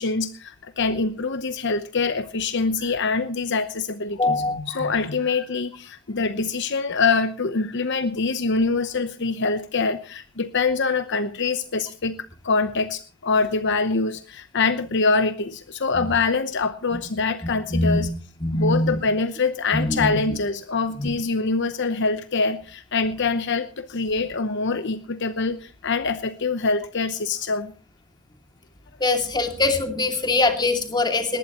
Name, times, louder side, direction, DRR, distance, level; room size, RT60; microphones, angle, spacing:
voice 1, 0.0-12.2 12.4-18.1 18.5-27.7, left 4 dB, 60° left, 11 dB, 0.9 m, -24 dB
voice 2, 4.2-5.1 17.7-18.1 18.4-19.0 19.7-20.2 21.0-21.1 29.0-31.4, left 2 dB, 20° left, 5 dB, 2.6 m, -23 dB
20.0 x 18.5 x 3.0 m, 0.36 s
head